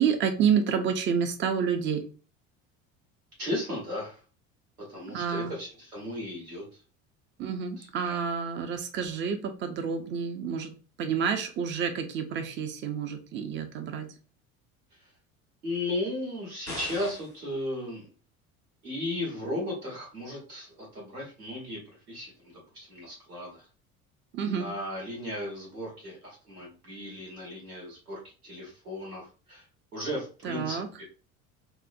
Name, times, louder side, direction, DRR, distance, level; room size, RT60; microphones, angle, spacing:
voice 1, 0.0-2.1 5.1-5.5 7.4-14.1 24.3-24.7 30.4-30.9, right 7 dB, 25° right, 7 dB, 0.5 m, -29 dB
voice 2, 3.4-4.2 4.9-6.6 7.8-8.2 15.6-18.1 18.8-21.8 22.1-23.7 24.5-29.6 29.9-31.0, left 1 dB, 80° right, -3 dB, 1.4 m, -35 dB
sound 1, 16.7-17.4, left 2 dB, 90° left, 1.2 m, -40 dB
4.2 x 2.1 x 2.5 m, 0.36 s
figure-of-eight pair, 65°, 43 cm